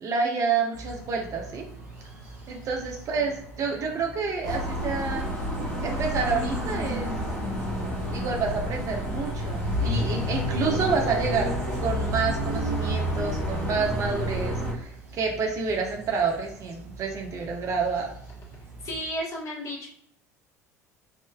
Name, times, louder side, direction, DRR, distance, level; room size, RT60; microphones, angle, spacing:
voice 1, 0.0-1.6 2.5-5.2 5.8-7.1 8.1-11.5 11.8-18.1, right 5 dB, 40° right, 1 dB, 0.6 m, -28 dB
sound 1, 0.7-19.1, right 2 dB, 75° right, 0.8 m, -45 dB
sound 2, 4.4-14.7, equal, 85° left, 1.2 m, -29 dB
voice 2, 18.8-19.9, equal, 40° left, -3 dB, 1.2 m, -34 dB
3.5 x 2.6 x 2.3 m, 0.70 s
figure-of-eight pair, 65°, 8 cm